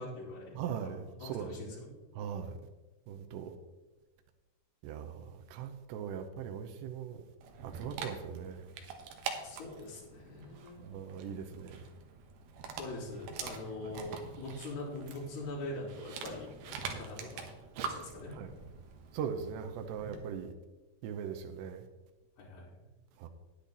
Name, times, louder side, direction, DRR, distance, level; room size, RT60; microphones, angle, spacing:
voice 1, 0.0-0.9 1.2-1.9 9.3-10.9 12.6-17.5 17.8-18.3 22.4-22.8, left 2 dB, 60° left, -10 dB, 5.7 m, -43 dB
voice 2, 0.5-1.8 2.2-2.6 3.1-3.6 4.8-7.2 7.6-8.7 10.8-11.9 13.8-13.9 16.9-17.0 18.3-18.5 19.1-20.5 21.0-21.8 23.2-23.3, right 7 dB, 90° right, 4 dB, 3.0 m, -40 dB
Dog, 7.4-20.3, right 6 dB, 70° right, 2.8 m, -45 dB
10.0 x 10.0 x 4.0 m, 1.1 s
omnidirectional pair, 4.8 m